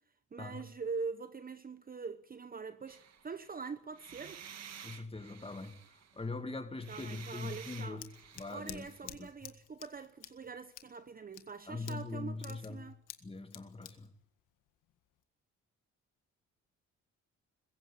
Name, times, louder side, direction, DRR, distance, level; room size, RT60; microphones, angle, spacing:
voice 1, 0.3-4.4 6.9-8.0 8.5-13.0, right 5 dB, 30° right, 0.9 m, -43 dB
sound 1, 2.9-3.5 3.9-6.3 6.8-9.1, right 8 dB, 60° right, 1.9 m, -52 dB
voice 2, 4.8-8.1 8.4-9.3 11.7-12.8 13.2-14.1, left 3 dB, 20° left, 2.4 m, -42 dB
Scissors, 7.5-15.2, left 12 dB, 85° left, 1.8 m, -52 dB
22.0 x 15.0 x 8.6 m
cardioid pair, 90°, 30 cm